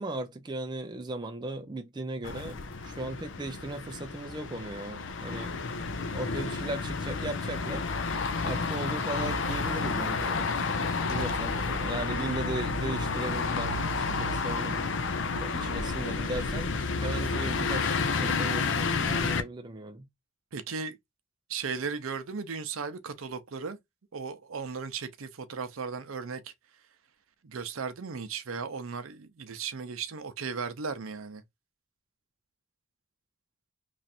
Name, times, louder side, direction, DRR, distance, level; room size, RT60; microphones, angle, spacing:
voice 1, 0.0-5.5 6.1-7.8 8.4-10.6 11.1-14.9 15.4-16.7 17.0-20.1, right 2 dB, 20° right, 0.4 m, -37 dB
sound 1, 2.2-19.4, left 4 dB, 60° left, 0.5 m, -30 dB
voice 2, 20.5-21.0 21.5-23.8 24.1-26.5 27.4-31.4, right 5 dB, 70° right, 0.6 m, -36 dB
3.1 x 2.5 x 4.2 m
head